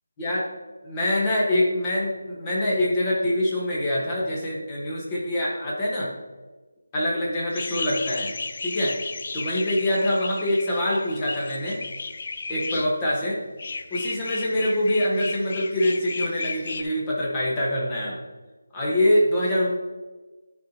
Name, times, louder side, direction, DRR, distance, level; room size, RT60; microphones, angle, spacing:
voice 1, 0.8-6.1 6.9-8.3 8.6-9.0 9.3-11.8 12.5-13.4 13.9-18.2 18.7-19.7, left 1 dB, 15° left, -5 dB, 1.4 m, -24 dB
sound 1, 7.5-12.9 13.6-16.8, left 4 dB, 40° left, 0.4 m, -34 dB
11.5 x 4.1 x 2.9 m, 1.2 s
figure-of-eight pair, 170°, 0 cm